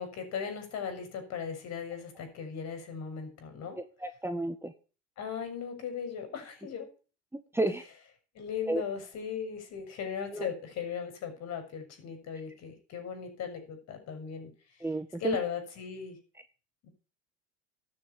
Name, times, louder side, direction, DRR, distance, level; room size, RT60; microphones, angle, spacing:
voice 1, 0.0-3.8 5.2-6.9 8.3-14.5 15.2-16.2 16.8-16.9, left 7 dB, 50° left, 6 dB, 6.5 m, -37 dB
voice 2, 3.7-4.7 7.5-7.8 8.7-8.8 10.3-10.5 14.8-15.4, right 2 dB, 5° right, 8 dB, 1.5 m, -31 dB
13.0 x 7.5 x 8.5 m, 0.36 s
supercardioid pair, 105°, 33 cm